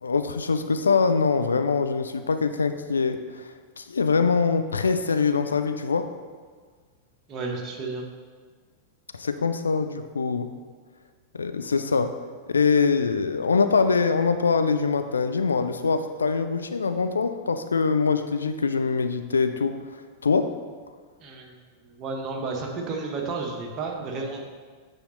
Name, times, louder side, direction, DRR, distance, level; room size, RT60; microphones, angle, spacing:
voice 1, 0.0-3.5 3.8-6.1 9.1-10.5 11.3-12.1 12.5-19.7 20.2-20.5, left 5 dB, 75° left, 9 dB, 0.3 m, -23 dB
voice 2, 7.3-8.0 21.2-21.5 21.8-24.4, right 3 dB, 35° right, 0 dB, 1.1 m, -32 dB
8.5 x 4.9 x 3.1 m, 1.5 s
figure-of-eight pair, 90°, 0 cm